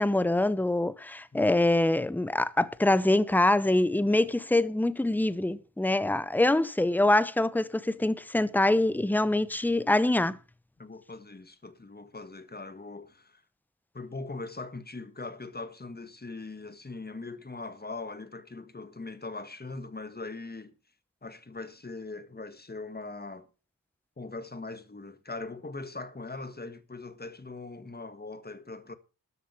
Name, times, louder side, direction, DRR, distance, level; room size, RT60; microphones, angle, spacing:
voice 1, 0.0-10.4, left 1 dB, 5° left, 0.8 m, -25 dB
voice 2, 1.3-1.7 10.8-13.4 13.9-20.7 21.2-23.5 24.2-28.9, left 3 dB, 25° left, 1.7 m, -41 dB
13.0 x 7.4 x 7.1 m
wide cardioid pair, 85°, 35 cm